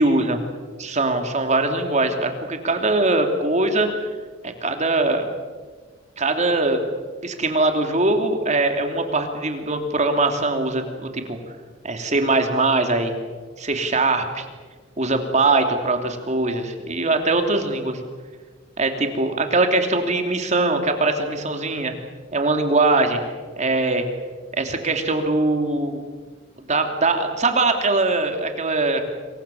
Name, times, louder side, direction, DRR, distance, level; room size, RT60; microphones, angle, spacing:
voice 1, 0.0-0.4 0.8-4.1 4.4-5.3 6.2-6.8 7.2-11.4 11.8-13.2 13.6-14.4 15.0-18.0 18.8-21.9 22.3-23.2 23.6-24.0 24.5-26.0 26.7-29.0, right 2 dB, 40° right, 5 dB, 3.0 m, -21 dB
26.5 x 24.0 x 7.2 m, 1.5 s
head